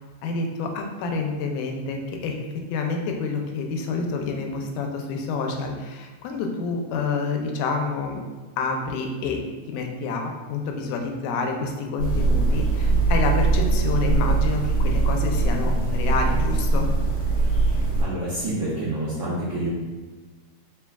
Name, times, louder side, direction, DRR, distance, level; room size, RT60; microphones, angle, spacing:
voice 1, 0.2-2.4 2.7-8.2 8.6-9.4 9.7-16.9, left 4 dB, 90° left, 2 dB, 2.1 m, -28 dB
sound 1, 12.0-18.0, right 3 dB, 50° left, 2.1 m, -21 dB
voice 2, 18.0-19.7, right 1 dB, 75° right, -9 dB, 1.3 m, -28 dB
4.8 x 3.4 x 2.2 m, 1.3 s
omnidirectional pair, 3.6 m